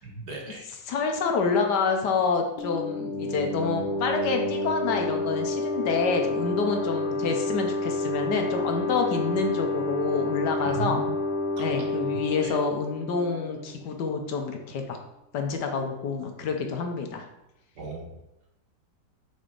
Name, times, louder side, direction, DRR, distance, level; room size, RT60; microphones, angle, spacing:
voice 1, 0.0-0.7 10.6-11.1 11.6-11.7 12.4-12.5 17.8-18.2, right 3 dB, 60° right, -1 dB, 1.8 m, -36 dB
voice 2, 0.9-11.0 11.6-15.0 15.3-17.2, left 5 dB, 70° left, 4 dB, 1.4 m, -28 dB
sound 1, 2.6-14.0, left 2 dB, 45° left, 0.6 m, -29 dB
6.0 x 4.0 x 5.0 m, 0.91 s
omnidirectional pair, 2.0 m